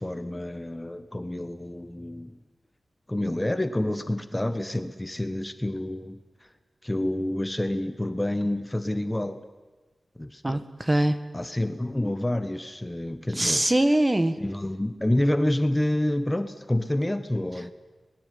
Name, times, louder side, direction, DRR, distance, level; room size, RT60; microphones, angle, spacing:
voice 1, 0.0-2.3 3.1-6.2 6.8-9.4 10.2-10.6 11.3-13.6 14.4-17.7, left 1 dB, 15° left, 10 dB, 1.3 m, -28 dB
voice 2, 10.4-11.2 13.3-14.4, right 1 dB, 20° right, 10 dB, 1.6 m, -22 dB
26.5 x 21.0 x 9.4 m, 1.3 s
wide cardioid pair, 90°, 0 cm